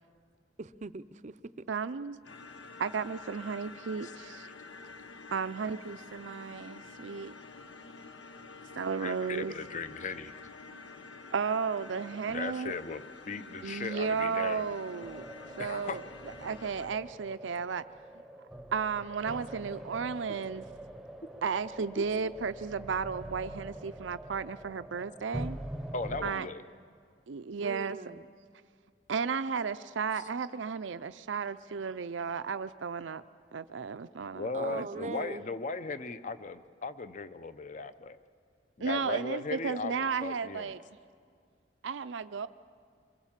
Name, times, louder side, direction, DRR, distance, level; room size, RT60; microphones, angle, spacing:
voice 1, 0.6-1.7 27.6-28.3 34.5-35.4, right 3 dB, 40° right, 15 dB, 0.5 m, -41 dB
voice 2, 1.7-2.2 2.8-4.5 5.3-7.3 8.8-9.5 11.3-12.7 13.6-15.3 15.6-16.0 16.4-17.8 18.7-20.6 21.4-25.6 26.2-26.5 27.3-28.0 29.1-33.2 33.5-35.1 38.8-40.8 41.8-42.5, right 5 dB, 85° right, 13 dB, 0.5 m, -34 dB
sound 1, 2.2-16.9, left 3 dB, 90° left, 1.0 m, -48 dB
voice 3, 9.0-10.3 12.3-14.7 15.6-16.0 22.0-22.1 25.9-26.6 34.3-38.2 38.8-40.7, left 3 dB, 40° left, 12 dB, 0.7 m, -37 dB
sound 2, 15.0-26.3, right 1 dB, ahead, 0.8 m, -44 dB
25.5 x 23.0 x 7.4 m, 2.2 s
head